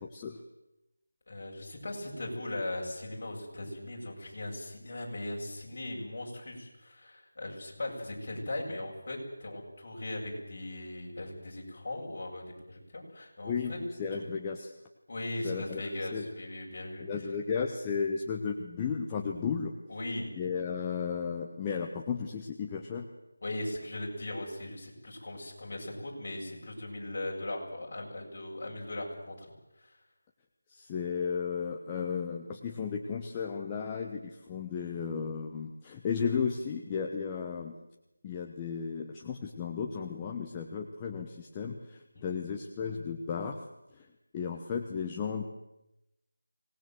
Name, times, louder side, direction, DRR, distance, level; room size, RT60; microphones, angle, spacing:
voice 1, 1.3-13.8 14.1-14.3 15.1-17.2 19.9-20.3 23.4-29.5 29.8-30.0 34.8-35.0 42.1-42.4, left 1 dB, 40° left, -2 dB, 7.7 m, -39 dB
voice 2, 14.0-14.7 15.4-15.8 16.1-16.3 17.0-19.7 20.4-23.1 30.7-37.7 38.2-43.6 44.3-45.4, left 6 dB, 15° left, 2 dB, 1.1 m, -34 dB
25.5 x 19.5 x 7.8 m, 0.92 s
figure-of-eight pair, 175°, 0 cm